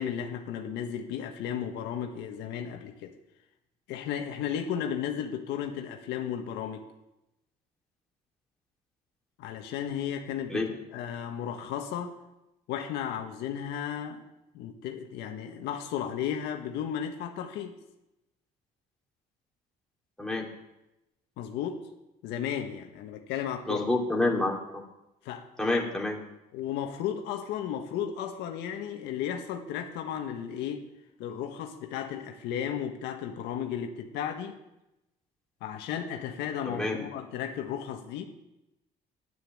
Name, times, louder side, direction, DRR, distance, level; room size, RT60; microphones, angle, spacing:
voice 1, 0.0-3.1 3.9-6.8 9.4-12.2 12.7-14.2 14.5-17.7 21.4-21.8 22.2-23.8 25.2-25.5 26.5-30.9 31.2-34.6 35.6-38.3, left 9 dB, 90° left, 4 dB, 1.5 m, -34 dB
voice 2, 23.7-24.8 25.6-26.2 36.7-37.0, left 2 dB, 5° left, -1 dB, 2.8 m, -28 dB
9.8 x 9.3 x 9.0 m, 0.93 s
cardioid pair, 110°, 17 cm